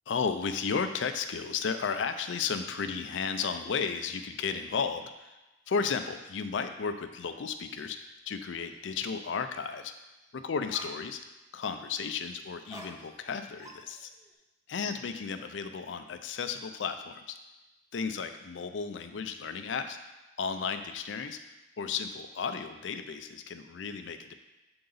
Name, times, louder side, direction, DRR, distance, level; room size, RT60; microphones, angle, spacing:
voice 1, 0.1-5.4 5.7-9.9 10.3-11.2 11.5-14.1 14.7-17.4 17.9-20.0 20.4-21.4 21.8-24.3, left 5 dB, 70° left, 8 dB, 0.4 m, -34 dB
sound 1, 7.7-7.9 8.3-8.8 10.3-10.4 10.7-11.4 12.7-13.3 13.6-14.3, right 1 dB, 15° right, 0.6 m, -49 dB
7.9 x 3.8 x 4.0 m, 1.0 s
head